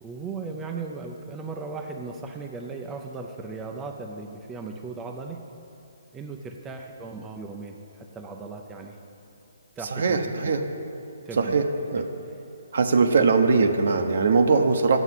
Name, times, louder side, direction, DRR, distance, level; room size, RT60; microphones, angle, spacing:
voice 1, 0.0-5.4 6.1-9.0 9.8-10.6 11.3-11.6 11.9-12.0, right 4 dB, 15° right, 2 dB, 0.5 m, -37 dB
voice 2, 9.9-10.6 11.4-12.0 12.7-15.0, right 4 dB, 65° right, 6 dB, 0.8 m, -21 dB
8.0 x 7.1 x 7.5 m, 2.7 s
hypercardioid pair, 150°, 0 cm